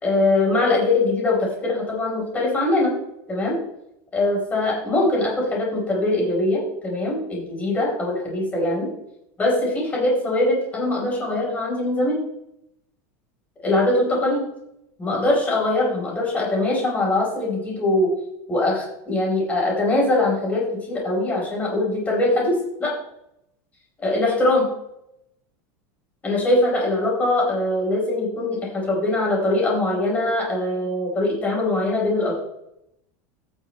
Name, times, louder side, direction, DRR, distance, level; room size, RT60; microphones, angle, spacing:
voice 1, 0.0-2.9 3.3-3.6 4.1-8.9 9.4-12.2 13.6-14.5 15.0-18.1 18.5-22.9 24.0-24.7 26.2-32.4, left 2 dB, 15° left, -3 dB, 4.3 m, -22 dB
16.0 x 6.5 x 3.2 m, 0.81 s
supercardioid pair, 155°, 9 cm